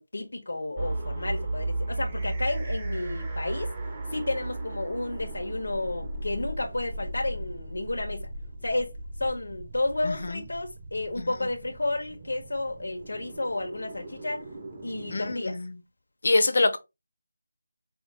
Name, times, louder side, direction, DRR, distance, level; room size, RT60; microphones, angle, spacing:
voice 1, 0.0-3.7 4.1-8.3 8.6-8.9 9.2-14.4 14.8-15.6, left 2 dB, 80° left, 1.0 m, -31 dB
sound 1, 0.8-15.4, right 2 dB, 15° right, 0.7 m, -36 dB
voice 2, 10.0-10.4 11.2-11.3 15.1-15.7 16.2-16.8, left 3 dB, 50° left, 0.7 m, -25 dB
4.9 x 2.4 x 3.6 m
figure-of-eight pair, 175°, 0 cm